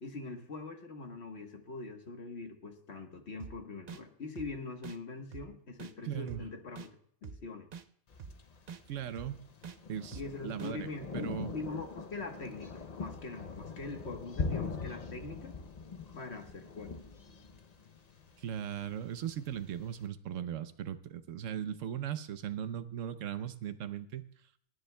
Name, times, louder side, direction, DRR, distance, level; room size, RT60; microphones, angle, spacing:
voice 1, 0.0-7.0 7.2-7.7 10.1-15.5 16.1-17.0, left 3 dB, 60° left, 4 dB, 1.5 m, -43 dB
sound 1, 3.4-3.5 3.9-4.0 4.4-4.5 4.8-5.0 5.3-5.4 5.8-5.9 6.3-6.4 6.8-6.9 7.2-7.4 7.7-7.8 8.2-8.3 8.7-8.8 9.2-9.3 9.6-9.8 10.1-10.2 10.6-10.7, right 6 dB, 55° right, 0.4 m, -45 dB
voice 2, 6.0-6.4 8.9-9.4 9.9-10.9 11.1-11.5 18.4-24.3, right 9 dB, 85° right, 11 dB, 1.1 m, -38 dB
Thunder, 8.1-20.0, left 4 dB, 40° left, 0.6 m, -43 dB
29.0 x 9.9 x 2.2 m, 0.64 s
omnidirectional pair, 1.3 m